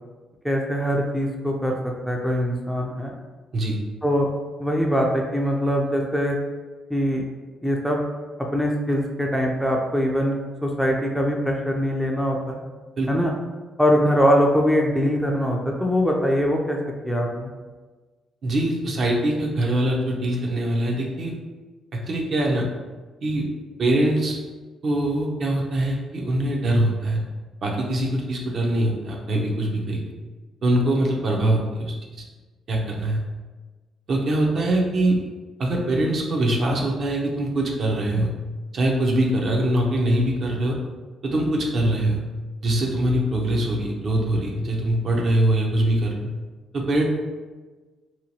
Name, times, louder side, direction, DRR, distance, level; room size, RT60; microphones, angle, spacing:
voice 1, 0.4-1.8 2.1-3.1 4.0-4.3 4.6-6.4 6.9-7.2 7.6-8.0 8.5-12.6 13.1-13.3 13.8-17.5, equal, ahead, 0 dB, 0.4 m, -22 dB
voice 2, 18.4-21.3 21.9-22.7 23.2-23.5 23.8-24.4 24.8-27.2 27.6-30.0 30.6-32.2 32.7-33.2 34.1-35.2 35.6-38.3 38.7-40.8 41.2-42.2 42.6-46.1 46.7-47.0, right 1 dB, 55° right, -1 dB, 0.6 m, -23 dB
2.8 x 2.2 x 2.8 m, 1.3 s
cardioid pair, 90°, 0 cm